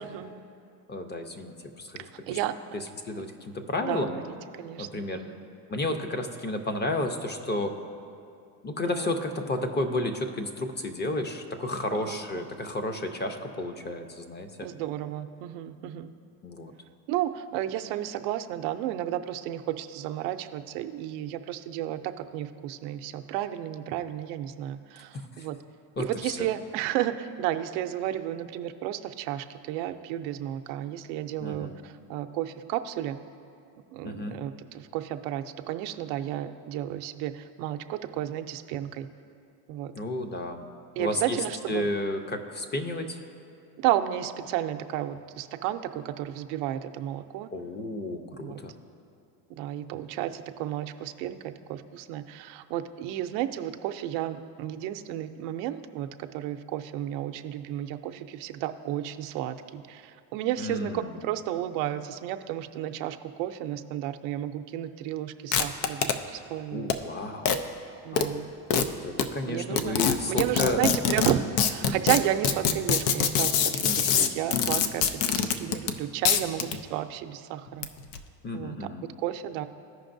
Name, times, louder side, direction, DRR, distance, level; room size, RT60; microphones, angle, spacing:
voice 1, 0.9-2.4 2.7-4.2 4.8-5.2 5.7-7.8 8.6-14.7 16.4-16.7 25.4-25.5 26.0-26.5 31.4-31.7 34.0-34.4 39.9-40.6 41.0-43.2 47.5-48.7 60.6-61.2 66.7-67.5 68.1-68.4 69.0-70.9 73.8-74.3 78.4-79.1, left 1 dB, 25° left, 6 dB, 0.6 m, -32 dB
voice 2, 2.3-2.8 3.8-4.2 4.6-5.4 8.9-9.1 11.9-12.5 14.6-16.1 17.1-25.6 26.0-33.2 33.9-39.1 39.7-39.9 41.0-41.9 43.8-47.5 48.4-48.6 49.6-66.9 68.0-68.5 69.5-70.0 70.3-73.6 74.0-77.9 78.5-78.9 79.2-79.7, right 12 dB, 85° right, 8 dB, 0.6 m, -32 dB
sound 1, 65.5-66.1 66.9-67.0 67.5-67.6 68.2-68.3 68.7-68.8 69.2-69.3 69.8-76.0 76.3-76.8 77.7-78.2, left 7 dB, 85° left, 0.6 m, -24 dB
15.0 x 5.3 x 2.6 m, 2.4 s
supercardioid pair, 110°, 45 cm